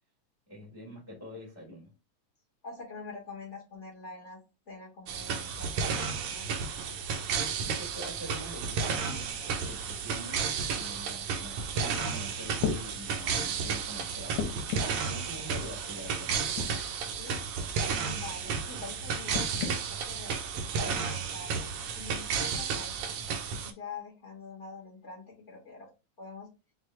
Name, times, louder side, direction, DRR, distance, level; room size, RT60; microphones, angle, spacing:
voice 1, 0.5-1.9 7.6-16.4, equal, 40° left, 0.4 m, -46 dB
voice 2, 2.6-4.4 4.7-6.5 17.2-17.4 18.0-20.3 20.8-23.2 23.6-25.9 26.2-26.5, left 4 dB, 60° left, 0.7 m, -45 dB
sound 1, 5.1-23.7, right 5 dB, 80° right, 1.3 m, -33 dB
sound 2, 12.0-12.1 12.6-12.8 14.3-15.0 16.3-16.7 17.3-17.4 19.3-19.8 20.7-20.8, left 6 dB, 85° left, 2.5 m, -33 dB
6.2 x 2.1 x 3.2 m
omnidirectional pair, 3.4 m